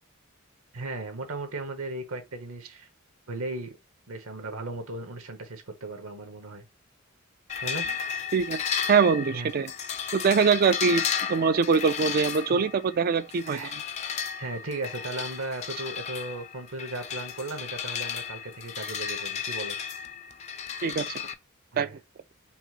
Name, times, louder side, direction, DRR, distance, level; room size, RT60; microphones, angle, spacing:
voice 1, 0.7-2.9 3.3-3.8 4.1-6.6 7.6-7.9 9.3-9.5 12.5-12.6 13.5-13.8 14.4-19.8 21.7-22.0, right 2 dB, 90° right, 1.1 m, -36 dB
sound 1, 7.5-21.3, left 7 dB, 35° left, 0.3 m, -34 dB
voice 2, 8.9-9.7 10.1-13.6 20.8-21.1 21.8-22.0, right 5 dB, 45° right, 0.4 m, -23 dB
5.4 x 3.0 x 2.4 m
head